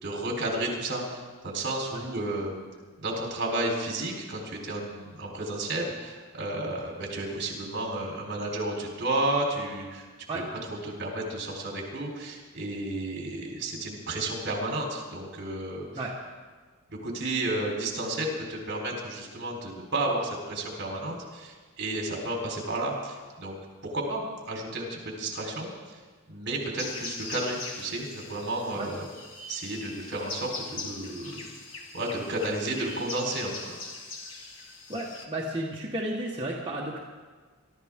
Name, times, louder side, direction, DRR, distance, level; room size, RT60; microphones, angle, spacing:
voice 1, 0.0-2.6 3.0-10.1 10.3-10.4 10.7-15.9 16.9-23.6 23.8-26.0 26.3-29.1 29.5-31.4 31.9-33.8, right 2 dB, 55° right, -1 dB, 4.0 m, -32 dB
sound 1, 26.8-35.2, left 3 dB, 65° left, 1.8 m, -41 dB
voice 2, 34.9-37.0, right 1 dB, 25° right, -5 dB, 1.5 m, -33 dB
23.5 x 13.0 x 3.7 m, 1.4 s
head